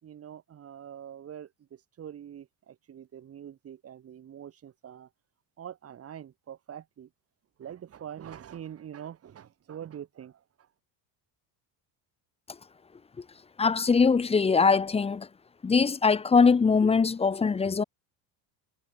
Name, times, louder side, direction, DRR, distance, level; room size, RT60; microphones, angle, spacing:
voice 1, 0.0-5.1 5.6-7.1 7.6-10.7, right 9 dB, 30° right, 4.5 m, -44 dB
voice 2, 13.6-15.3 15.6-17.8, left 5 dB, 15° left, 0.9 m, -22 dB
cardioid pair, 170°, 46 cm